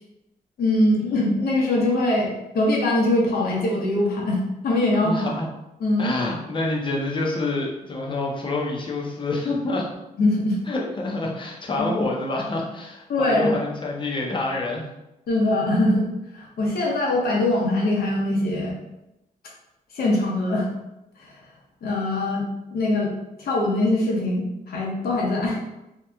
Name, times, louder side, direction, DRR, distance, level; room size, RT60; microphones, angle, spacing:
voice 1, 0.6-5.4 5.8-6.1 10.2-10.6 11.8-11.9 13.1-13.5 15.3-16.1 16.3-18.7 19.9-20.7 21.2-21.3 21.8-23.1 23.4-25.6, left 1 dB, 75° left, -3 dB, 0.9 m, -22 dB
voice 2, 5.0-5.4 6.0-9.9 10.7-14.9, left 2 dB, 30° left, -1 dB, 0.7 m, -27 dB
2.9 x 2.3 x 3.4 m, 0.93 s
cardioid pair, 100°, 16 cm